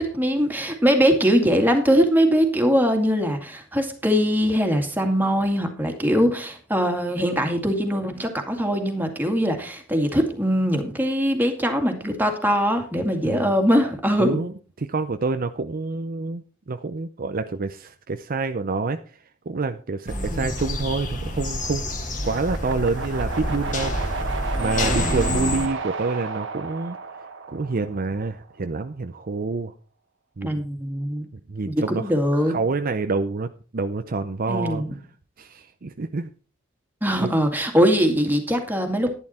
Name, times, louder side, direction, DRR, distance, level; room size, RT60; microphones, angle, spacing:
voice 1, 0.0-14.4 20.1-20.5 24.9-25.6 30.4-31.3 31.6-32.6 34.5-35.0 37.0-39.1, equal, 10° right, 4 dB, 2.2 m, -22 dB
voice 2, 14.2-19.0 19.5-21.8 22.2-24.0 24.6-27.0 27.5-29.7 30.4-30.6 31.5-32.1 32.5-34.8 35.4-36.3 37.2-37.3, right 3 dB, 45° right, 8 dB, 0.6 m, -27 dB
sound 1, 20.1-25.7, left 1 dB, 40° left, 2.5 m, -28 dB
sound 2, 22.2-28.4, right 4 dB, 65° right, 1.3 m, -33 dB
11.0 x 11.0 x 4.3 m, 0.39 s
head